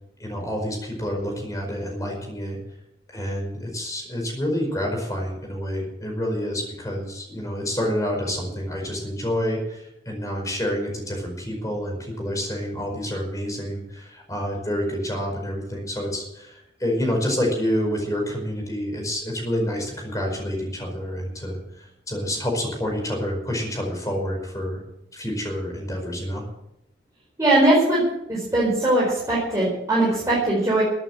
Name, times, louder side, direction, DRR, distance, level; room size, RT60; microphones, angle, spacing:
voice 1, 0.2-2.6 3.1-24.8 25.1-26.4, equal, 20° left, 1 dB, 5.0 m, -28 dB
voice 2, 27.4-28.0 28.3-30.8, right 1 dB, 20° right, -7 dB, 4.7 m, -20 dB
15.0 x 8.9 x 8.0 m, 0.85 s
head